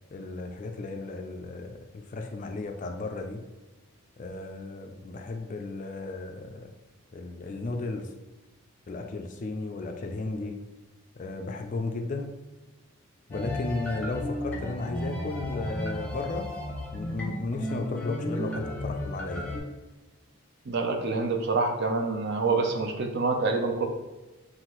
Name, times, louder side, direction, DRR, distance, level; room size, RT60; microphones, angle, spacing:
voice 1, 0.1-3.4 4.2-6.7 7.1-8.1 8.9-10.6 11.2-12.3 13.3-16.5 16.9-19.6, left 3 dB, 35° left, 4 dB, 0.3 m, -34 dB
sound 1, 13.3-19.6, left 1 dB, 5° left, 0.7 m, -34 dB
voice 2, 20.7-23.9, right 3 dB, 50° right, 4 dB, 0.5 m, -26 dB
5.6 x 2.5 x 3.0 m, 1.1 s
head